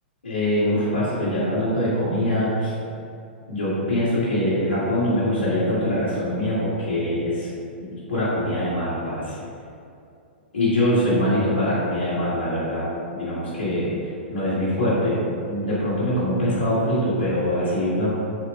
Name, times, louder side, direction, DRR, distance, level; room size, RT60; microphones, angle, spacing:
voice 1, 0.2-2.7 3.5-7.5 7.8-9.4 10.5-12.9 13.1-18.1, left 1 dB, 85° left, -13 dB, 1.3 m, -23 dB
4.1 x 2.9 x 3.2 m, 2.5 s
figure-of-eight pair, 110°, 6 cm